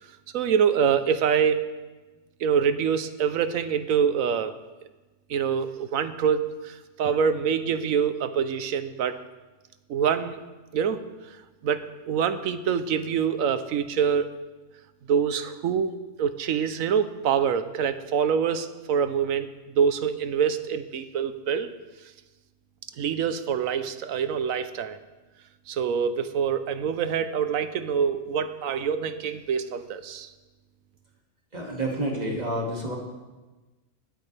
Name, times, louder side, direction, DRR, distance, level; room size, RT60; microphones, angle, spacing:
voice 1, 0.3-1.6 2.4-4.5 5.3-9.2 9.9-10.4 10.7-11.0 11.6-14.3 15.1-15.9 16.2-21.7 23.0-25.0 25.7-30.3, right 7 dB, 85° right, 11 dB, 1.2 m, -25 dB
voice 2, 31.5-32.9, right 1 dB, 30° right, -2 dB, 2.4 m, -29 dB
21.5 x 8.5 x 3.4 m, 1.2 s
omnidirectional pair, 1.4 m